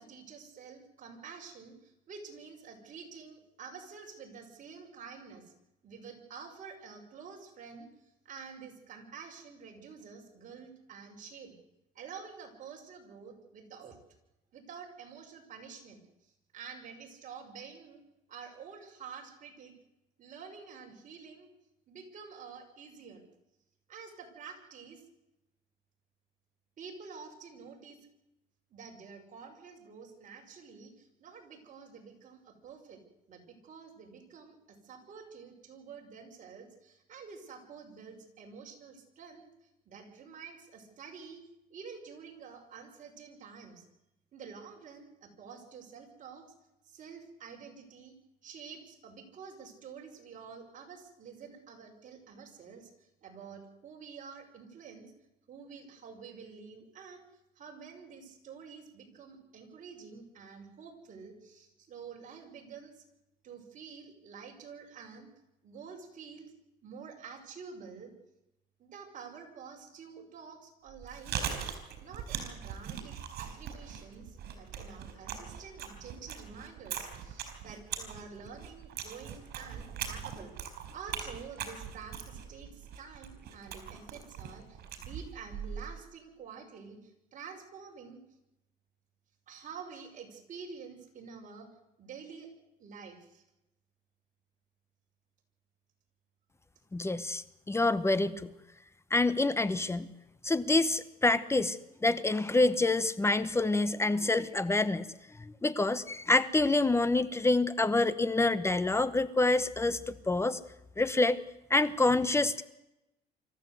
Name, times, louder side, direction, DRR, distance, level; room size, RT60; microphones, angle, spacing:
voice 1, 0.0-5.5 5.8-11.6 11.9-14.0 14.5-18.0 18.3-19.7 20.2-21.5 21.9-23.2 23.9-25.0 26.8-28.0 28.7-33.0 33.3-41.4 41.7-43.9 44.3-46.5 46.8-48.1 48.4-55.1 55.5-57.2 57.6-63.0 63.4-65.3 65.6-66.5 66.8-68.1 68.8-71.5 72.0-80.5 80.9-88.2 89.5-91.7 92.0-92.5 92.8-93.4, right 6 dB, 50° right, 2 dB, 5.9 m, -49 dB
Chewing mastication, 70.9-86.0, right 8 dB, 70° right, 5.3 m, -41 dB
voice 2, 96.9-98.5 99.1-100.1 100.4-105.1 105.4-110.6 111.0-111.4 111.7-112.6, left 2 dB, 15° left, 15 dB, 1.0 m, -27 dB
25.0 x 14.0 x 8.0 m, 0.90 s
cardioid pair, 110°, 17 cm